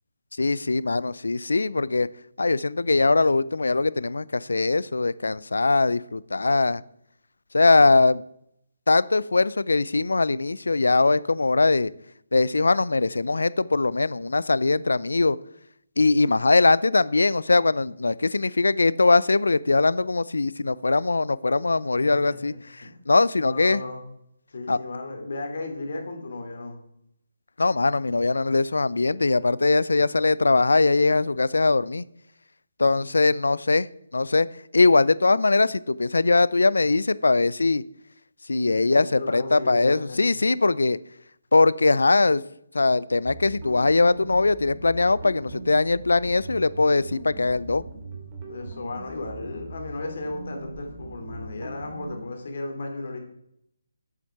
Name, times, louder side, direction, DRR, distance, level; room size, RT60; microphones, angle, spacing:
voice 1, 0.4-2.1 2.4-6.8 7.5-8.2 8.9-11.9 12.3-15.4 16.0-22.5 23.1-23.8 24.7-24.8 27.6-32.1 32.8-33.9 34.1-34.5 34.7-37.8 38.5-41.0 41.5-42.4 42.7-47.8, left 3 dB, 80° left, 0.4 m, -21 dB
voice 2, 21.9-22.9 23.3-24.0 24.5-26.8 38.8-40.2 40.7-40.8 48.4-53.2, left 2 dB, 60° left, 2.7 m, -35 dB
sound 1, 43.2-52.2, right 2 dB, 20° right, 2.5 m, -40 dB
7.8 x 7.3 x 5.9 m
figure-of-eight pair, 155°, 0 cm